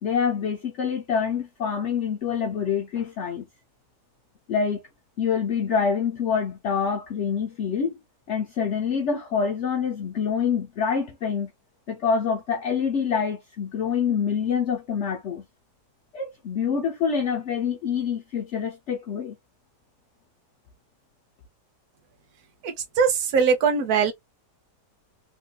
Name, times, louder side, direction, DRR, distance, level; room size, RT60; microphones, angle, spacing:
voice 1, 0.0-3.4 4.5-4.8 5.2-7.9 8.3-11.5 11.9-15.4 16.1-19.4, left 6 dB, 60° left, 0.8 m, -26 dB
voice 2, 22.6-24.1, right 6 dB, 65° right, 1.2 m, -21 dB
3.6 x 2.6 x 2.3 m
omnidirectional pair, 1.9 m